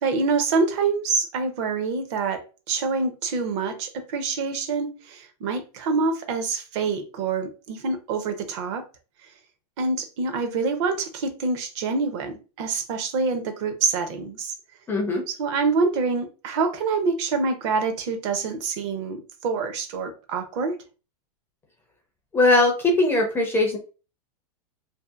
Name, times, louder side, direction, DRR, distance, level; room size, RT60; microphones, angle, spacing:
voice 1, 0.0-8.8 9.2-9.3 9.8-14.5 15.3-20.8, right 4 dB, 45° right, 0.6 m, -26 dB
voice 2, 14.9-15.2 22.3-23.8, left 2 dB, 10° left, 0.4 m, -20 dB
2.7 x 2.4 x 2.3 m
supercardioid pair, 145°, 20 cm